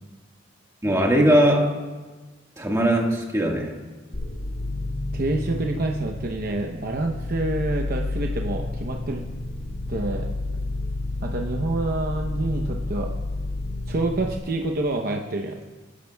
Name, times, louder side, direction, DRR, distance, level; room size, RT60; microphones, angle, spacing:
voice 1, 0.8-1.8 2.6-3.7, equal, 15° right, 0 dB, 1.6 m, -20 dB
sound 1, 4.1-14.4, left 2 dB, 70° left, 3.3 m, -30 dB
voice 2, 5.1-9.2 9.9-10.3 11.2-13.1 13.9-15.6, right 2 dB, 50° right, 2 dB, 0.8 m, -27 dB
23.5 x 11.5 x 2.3 m, 1.3 s
head